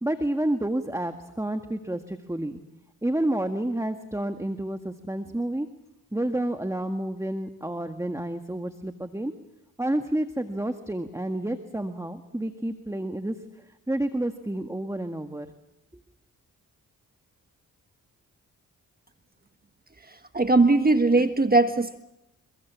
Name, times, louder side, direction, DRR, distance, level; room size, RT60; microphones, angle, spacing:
voice 1, 0.0-2.6 3.0-5.7 6.1-9.3 9.8-15.5, right 1 dB, 10° right, 7 dB, 1.8 m, -29 dB
voice 2, 20.1-22.0, right 2 dB, 25° right, 8 dB, 1.5 m, -20 dB
29.5 x 22.0 x 7.4 m, 0.87 s
cardioid pair, 60°, 34 cm